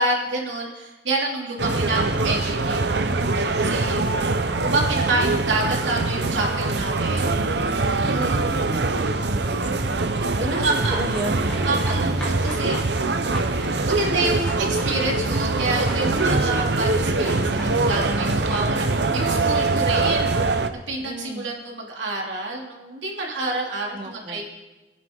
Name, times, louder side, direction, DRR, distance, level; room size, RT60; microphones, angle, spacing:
voice 1, 0.0-4.0 4.3-7.3 8.0-8.4 10.4-11.0 11.6-12.8 13.5-20.3 20.9-24.4, right 2 dB, 80° right, -2 dB, 3.1 m, -28 dB
sound 1, 1.6-20.7, right 3 dB, 60° right, 0.8 m, -23 dB
voice 2, 1.7-2.2 5.2-5.3 8.1-9.1 10.4-11.9 21.0-21.5 23.9-24.4, equal, 30° right, 2 dB, 1.7 m, -33 dB
sound 2, 11.1-18.6, equal, 5° left, 4.5 m, -39 dB
22.5 x 10.0 x 4.0 m, 1.2 s
head